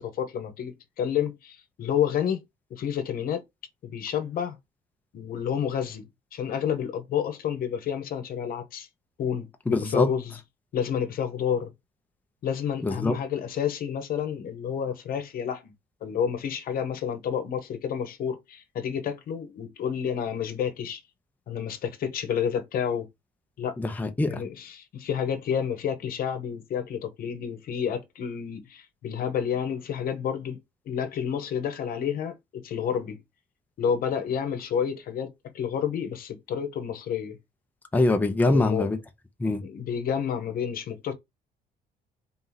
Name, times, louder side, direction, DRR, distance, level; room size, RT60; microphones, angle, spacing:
voice 1, 0.0-2.4 2.7-3.4 3.8-4.6 5.1-6.0 6.3-8.9 9.2-10.4 10.7-11.7 12.4-15.6 16.0-21.0 21.5-23.1 23.6-23.8 24.3-30.6 30.9-33.2 33.8-35.3 35.5-37.4 38.5-38.9 39.6-41.1, left 8 dB, 60° left, 1.0 m, -29 dB
voice 2, 9.7-10.1 12.8-13.2 23.8-24.4 37.9-39.0 39.4-39.6, left 2 dB, 10° left, 0.7 m, -24 dB
3.9 x 2.9 x 3.9 m
cardioid pair, 110°, 17 cm